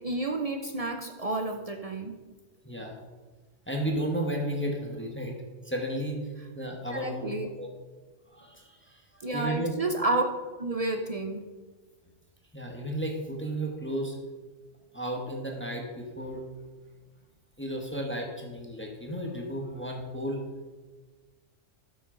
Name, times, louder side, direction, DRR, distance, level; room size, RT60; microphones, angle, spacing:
voice 1, 0.0-2.1 6.9-7.5 9.2-10.3 10.6-11.4, right 2 dB, 40° right, 4 dB, 0.5 m, -30 dB
voice 2, 2.6-3.0 3.7-5.4 5.6-6.3 6.5-7.3 7.6-7.7 8.3-9.8 12.5-14.2 14.9-16.4 17.6-20.4, right 1 dB, 10° left, 1 dB, 1.1 m, -33 dB
12.0 x 6.3 x 3.8 m, 1.3 s
omnidirectional pair, 1.3 m